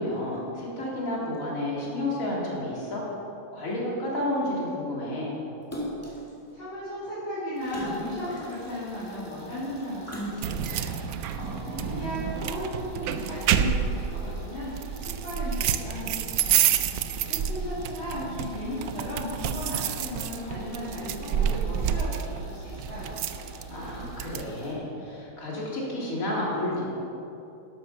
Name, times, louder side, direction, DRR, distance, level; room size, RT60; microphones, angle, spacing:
voice 1, 0.0-3.0 3.5-5.4 11.4-12.2 23.7-26.9, left 1 dB, 40° left, -5 dB, 3.1 m, -31 dB
Splash splatter, 5.7-6.3 7.6-8.9 10.0-10.8 11.4-11.5, equal, 5° left, 1.9 m, -37 dB
voice 2, 6.5-10.9 11.5-16.5 17.1-23.3, left 1 dB, 75° left, -11 dB, 3.7 m, -36 dB
sound 1, 7.5-24.7, equal, 55° right, 4.0 m, -47 dB
sound 2, 10.4-24.4, right 8 dB, 85° right, 0.8 m, -29 dB
12.0 x 12.0 x 5.5 m, 2.8 s
omnidirectional pair, 2.2 m